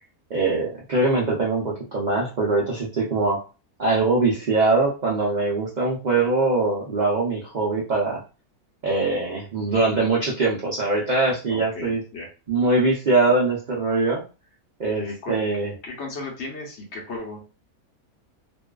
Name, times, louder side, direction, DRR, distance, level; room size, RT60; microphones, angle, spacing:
voice 1, 0.3-3.4 3.8-8.2 8.8-12.0 12.5-14.2 14.8-15.7, right 3 dB, 75° right, -4 dB, 0.4 m, -22 dB
voice 2, 11.5-12.3 15.0-15.4 15.8-17.4, left 2 dB, 55° left, 0 dB, 0.9 m, -35 dB
2.5 x 2.3 x 2.2 m, 0.33 s
omnidirectional pair, 1.6 m